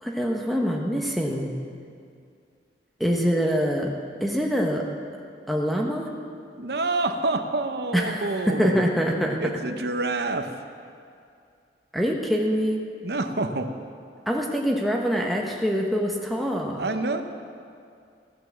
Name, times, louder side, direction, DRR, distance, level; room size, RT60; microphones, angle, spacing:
voice 1, 0.0-1.5 3.0-3.9 4.2-4.9 5.5-6.1 7.9-9.4 11.9-12.8 14.3-16.8, equal, ahead, 0 dB, 1.1 m, -24 dB
voice 2, 6.6-8.8 9.4-10.5 13.0-13.8 16.8-17.2, right 2 dB, 65° right, 7 dB, 0.9 m, -27 dB
15.0 x 9.4 x 7.3 m, 2.4 s
head